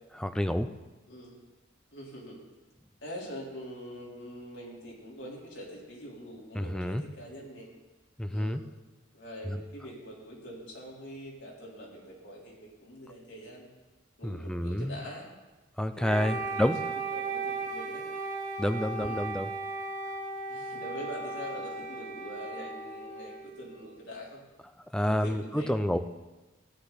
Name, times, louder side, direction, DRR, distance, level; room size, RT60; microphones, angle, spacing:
voice 1, 0.2-0.7 6.6-7.0 8.2-8.6 9.5-9.6 14.2-15.0 15.8-16.8 18.6-19.5 24.9-26.0, equal, 5° left, 9 dB, 0.5 m, -29 dB
voice 2, 1.1-1.4 1.9-2.4 3.0-7.7 8.3-8.6 9.1-13.7 14.2-15.3 15.9-16.7 17.1-18.0 19.0-19.3 20.5-24.4 25.1-25.8, equal, 70° left, -3 dB, 3.7 m, -44 dB
Wind instrument woodwind instrument, 16.0-24.0, right 3 dB, 45° right, 1.7 m, -36 dB
16.5 x 10.0 x 4.1 m, 1.2 s
head